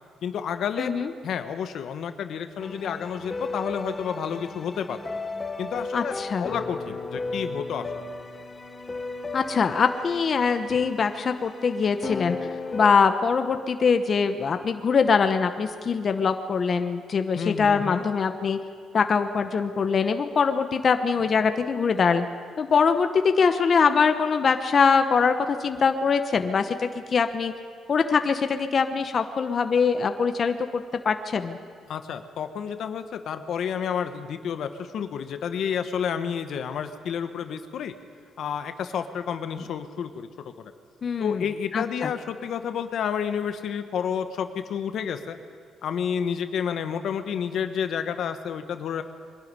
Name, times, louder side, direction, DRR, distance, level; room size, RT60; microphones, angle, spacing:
voice 1, 0.2-0.9 1.2-5.0 5.6-8.1 17.4-18.0 31.9-37.9 38.4-40.5 41.2-45.4 45.8-49.0, left 7 dB, 70° left, 9 dB, 1.2 m, -30 dB
voice 2, 0.8-1.1 5.9-6.5 9.3-18.6 18.9-22.3 22.6-27.5 27.9-31.6 41.0-41.4 41.7-42.1, left 5 dB, 45° left, 7 dB, 1.1 m, -23 dB
sound 1, 2.6-12.9, left 3 dB, 25° left, 1.4 m, -35 dB
23.0 x 12.0 x 9.7 m, 2.1 s
cardioid pair, 90°, 0 cm